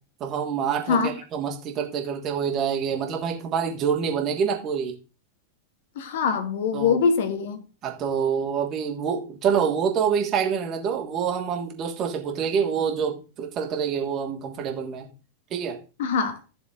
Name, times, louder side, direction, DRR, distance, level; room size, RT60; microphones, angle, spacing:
voice 1, 0.2-5.0 6.7-7.0 7.8-15.1 15.5-15.8, right 7 dB, 35° right, 3.1 m, -26 dB
voice 2, 6.0-7.6 16.0-16.4, left 6 dB, 55° left, 2.0 m, -23 dB
15.5 x 6.9 x 3.9 m
figure-of-eight pair, 90°, 0 cm